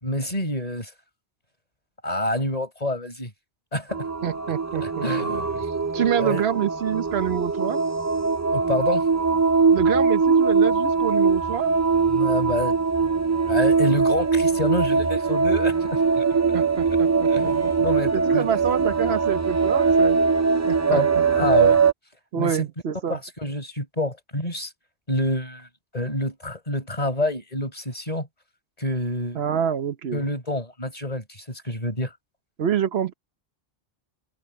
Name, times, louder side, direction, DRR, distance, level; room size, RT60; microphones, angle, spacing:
voice 1, 0.0-0.9 2.0-3.3 3.7-4.1 4.8-5.7 6.2-6.4 8.5-9.0 12.1-13.1 13.5-16.2 17.3-18.6 20.5-21.8 22.3-22.6 23.1-24.7 25.1-25.7 25.9-28.3 28.8-29.4 30.1-32.1, left 1 dB, 40° left, 5.6 m, -28 dB
sound 1, 3.9-21.9, right 5 dB, 20° right, 0.5 m, -21 dB
voice 2, 4.2-5.0 5.9-7.8 9.7-11.7 16.5-17.7 18.1-20.2 20.7-21.7 22.3-23.2 29.3-30.2 32.6-33.1, right 9 dB, 80° right, 1.1 m, -27 dB
omnidirectional pair, 1.0 m